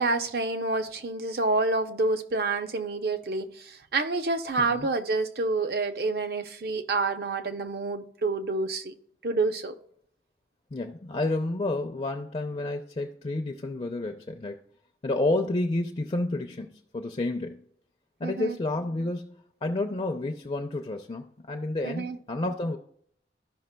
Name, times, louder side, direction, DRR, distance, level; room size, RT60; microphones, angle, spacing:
voice 1, 0.0-8.9 9.2-9.8 18.2-18.6 21.8-22.2, right 3 dB, 60° right, 0.6 m, -28 dB
voice 2, 10.7-14.6 15.0-17.6 18.2-19.3 19.6-22.8, left 2 dB, 30° left, 0.4 m, -30 dB
13.5 x 5.6 x 2.2 m
head